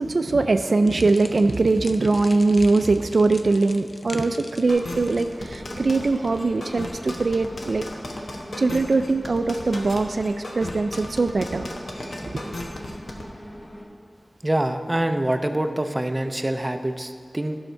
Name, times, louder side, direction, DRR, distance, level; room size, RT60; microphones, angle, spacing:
voice 1, 0.0-7.8 8.6-11.7 12.2-12.4, right 3 dB, 75° right, 8 dB, 0.3 m, -21 dB
sound 1, 0.8-8.1, left 2 dB, 65° left, 0.5 m, -44 dB
sound 2, 4.7-13.2, left 1 dB, 85° left, 1.0 m, -35 dB
sound 3, 5.2-13.9, equal, 25° left, 1.3 m, -41 dB
voice 2, 14.4-17.6, right 1 dB, 25° right, 7 dB, 0.5 m, -25 dB
11.5 x 6.4 x 4.5 m, 2.1 s
wide cardioid pair, 70°, 0 cm